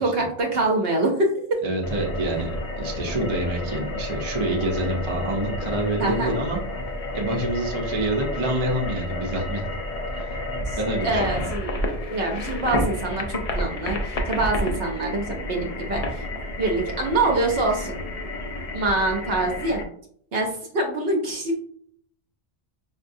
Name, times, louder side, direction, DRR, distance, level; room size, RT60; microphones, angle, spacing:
voice 1, 0.0-1.6 6.0-6.3 10.7-10.8 11.0-11.7 12.1-16.3 16.6-17.9 18.7-19.9 20.3-20.5 20.7-21.5, right 2 dB, 65° right, 1 dB, 0.8 m, -25 dB
voice 2, 1.6-2.5 2.8-6.6 7.1-9.6 10.2-10.4 10.8-11.4, right 1 dB, 30° right, -1 dB, 0.6 m, -27 dB
sound 1, 1.8-19.8, left 1 dB, 50° left, 0.4 m, -30 dB
5.1 x 2.2 x 2.6 m, 0.63 s
omnidirectional pair, 1.1 m